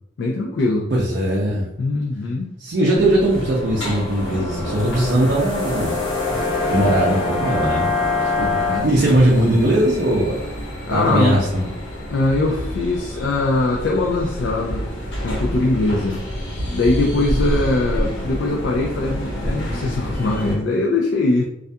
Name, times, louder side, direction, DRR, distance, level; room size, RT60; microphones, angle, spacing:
voice 1, 0.2-0.9 1.8-2.5 8.4-9.2 10.9-11.4 12.1-14.9 15.2-16.2 16.7-21.4, left 2 dB, 70° left, -1 dB, 0.3 m, -21 dB
voice 2, 0.9-1.7 2.6-6.2 6.7-7.9 8.2-8.3 8.8-10.5 10.9-11.6, right 1 dB, 65° right, -4 dB, 0.5 m, -19 dB
sound 1, 2.8-8.8, left 3 dB, 25° left, 0.6 m, -25 dB
sound 2, 3.0-20.5, equal, 90° left, 1.0 m, -29 dB
2.3 x 2.2 x 2.6 m, 0.80 s
head